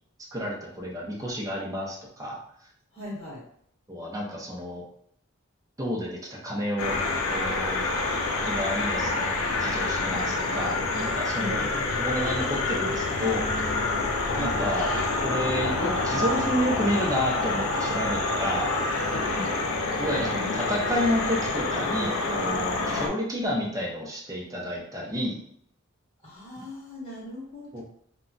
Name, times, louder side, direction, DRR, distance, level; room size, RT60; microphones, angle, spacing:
voice 1, 0.3-2.4 3.9-4.8 5.8-7.0 7.3-7.8 8.4-11.6 12.0-13.7 14.4-14.9 15.2-18.7 20.0-25.4 27.7-27.8, equal, 15° right, -3 dB, 0.6 m, -30 dB
voice 2, 2.9-3.4 11.3-11.8 14.4-14.6 19.3-19.5 26.2-27.8, left 1 dB, 25° left, -9 dB, 0.9 m, -38 dB
sound 1, 6.8-23.1, left 3 dB, 75° left, 0.5 m, -27 dB
2.2 x 2.2 x 3.8 m, 0.68 s
head